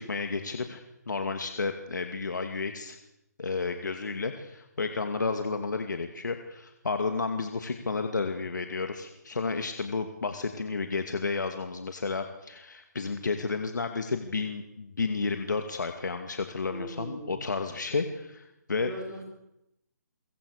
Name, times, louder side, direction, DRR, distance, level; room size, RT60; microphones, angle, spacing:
voice 1, 0.0-3.0 3.4-18.9, left 4 dB, 85° left, 6 dB, 2.5 m, -32 dB
voice 2, 16.7-17.4 18.8-19.2, right 1 dB, 5° right, -1 dB, 4.9 m, -40 dB
23.5 x 23.0 x 6.7 m, 0.86 s
hypercardioid pair, 160°, 10 cm